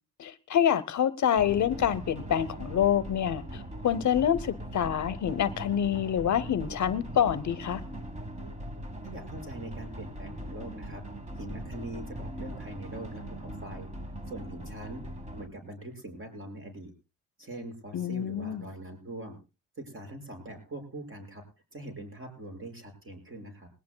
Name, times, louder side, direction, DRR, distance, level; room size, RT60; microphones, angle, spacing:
voice 1, 0.2-7.8 17.9-18.6, left 9 dB, 55° left, 0.7 m, -27 dB
sound 1, 1.4-15.5, right 1 dB, 20° right, 1.3 m, -40 dB
voice 2, 9.0-11.0 11.3-13.9 14.2-15.0 15.4-16.9 17.4-19.4 19.8-21.4 21.7-23.7, right 1 dB, 35° right, 5.8 m, -42 dB
20.5 x 18.5 x 2.2 m
cardioid pair, 100°, 34 cm